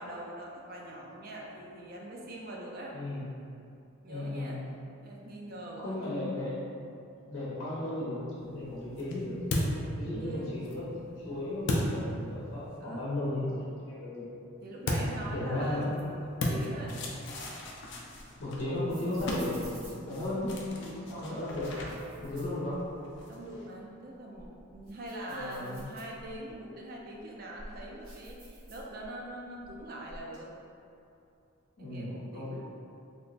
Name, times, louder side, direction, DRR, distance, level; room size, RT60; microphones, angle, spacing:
voice 1, 0.0-3.0 4.0-4.6 5.0-6.0 10.0-10.7 12.8-13.1 14.6-17.0 23.3-30.5 31.8-32.6, right 1 dB, 45° right, -2 dB, 0.4 m, -43 dB
voice 2, 2.9-3.2 4.1-4.6 5.8-6.7 7.3-9.4 10.0-14.3 15.3-16.0 18.4-19.6 19.9-21.7 22.2-22.8 25.3-25.8 31.8-32.6, left 1 dB, 80° left, -9 dB, 0.8 m, -35 dB
sound 1, 8.4-12.8 14.8-23.7, left 1 dB, 60° left, 0.4 m, -37 dB
sound 2, 18.1-20.8 21.4-23.2 23.6-23.7 24.2-26.6 27.1-29.3 29.6-30.4, equal, 90° right, 0.9 m, -51 dB
3.3 x 2.0 x 4.0 m, 2.6 s
head